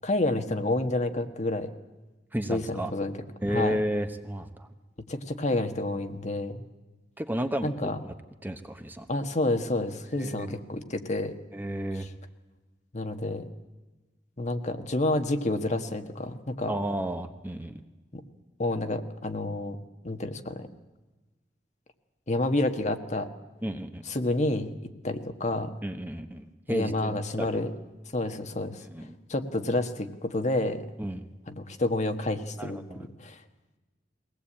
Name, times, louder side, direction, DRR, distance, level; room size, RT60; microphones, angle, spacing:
voice 1, 0.0-1.7 2.5-3.2 3.5-3.8 5.1-6.6 7.6-8.0 9.1-11.3 12.9-13.5 14.4-16.7 18.1-18.2 18.6-20.7 22.3-23.3 24.1-25.7 26.7-27.7 28.1-28.8 29.3-30.8 31.5-33.4, left 2 dB, 40° left, 7 dB, 1.5 m, -29 dB
voice 2, 2.3-2.9 3.4-4.7 7.2-7.7 8.0-8.1 8.4-9.1 10.2-10.6 11.5-12.1 16.7-17.8 23.6-24.0 25.8-27.5 28.9-29.2 31.0-31.2 32.6-33.1, right 1 dB, 10° right, 7 dB, 1.1 m, -32 dB
22.0 x 18.0 x 8.7 m, 1.2 s
head